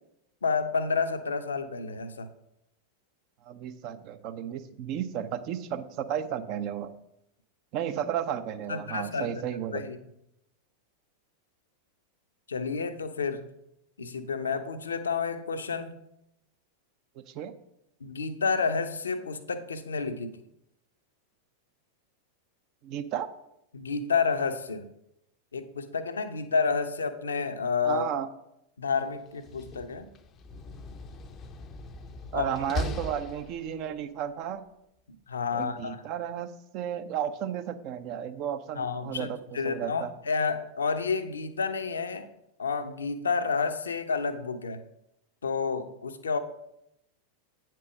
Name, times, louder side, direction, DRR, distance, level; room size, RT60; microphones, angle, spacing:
voice 1, 0.4-2.3 8.7-9.3 9.7-10.0 12.5-13.4 14.0-16.0 18.0-20.3 23.7-24.9 25.5-28.0 28.8-30.1 32.3-32.5 35.3-36.0 38.8-39.3 39.5-42.3 42.6-44.8 45.4-46.4, left 5 dB, 70° left, 9 dB, 0.7 m, -30 dB
voice 2, 3.4-6.9 7.7-9.9 17.2-17.5 22.8-23.3 27.8-28.3 32.3-34.7 35.5-40.1, right 9 dB, 40° right, 10 dB, 0.6 m, -33 dB
Slam, 29.3-34.0, left 2 dB, 30° left, 0.6 m, -39 dB
8.7 x 4.6 x 6.1 m, 0.82 s
figure-of-eight pair, 90°, 0 cm